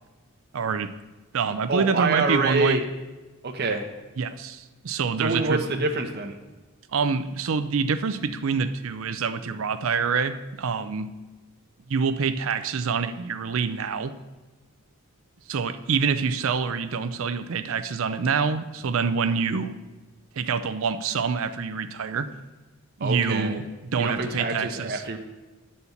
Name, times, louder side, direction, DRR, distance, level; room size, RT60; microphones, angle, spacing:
voice 1, 0.5-0.9 1.3-2.8 4.2-5.6 6.9-11.1 11.9-14.1 15.5-19.8 20.4-22.3 23.0-23.6 23.9-25.0, right 5 dB, 60° right, 11 dB, 0.5 m, -26 dB
voice 2, 1.7-2.8 3.4-3.9 5.2-6.4 23.0-23.6 24.0-25.2, right 3 dB, 45° right, 3 dB, 0.9 m, -26 dB
9.4 x 4.3 x 7.0 m, 1.2 s
head